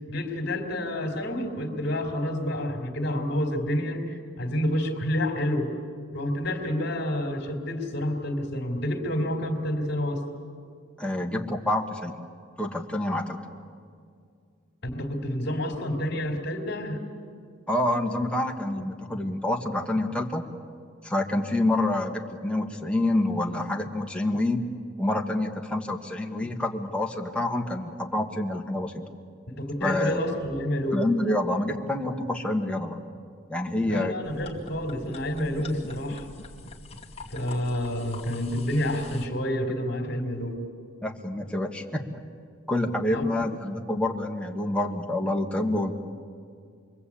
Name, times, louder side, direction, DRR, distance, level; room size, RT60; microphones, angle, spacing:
voice 1, 0.1-5.7 6.1-10.2 14.8-17.0 29.5-31.1 33.8-36.3 37.3-40.7 43.1-43.2, left 1 dB, 55° left, 1 dB, 3.1 m, -29 dB
voice 2, 11.0-12.2 12.6-13.4 17.7-20.4 21.0-24.6 25.0-29.0 29.8-30.2 30.9-33.0 33.5-34.2 41.0-42.2 42.7-45.9, left 1 dB, 5° left, 1 dB, 1.7 m, -27 dB
sound 1, 34.2-39.3, left 3 dB, 30° left, 2.4 m, -44 dB
28.5 x 22.5 x 8.6 m, 2.3 s
head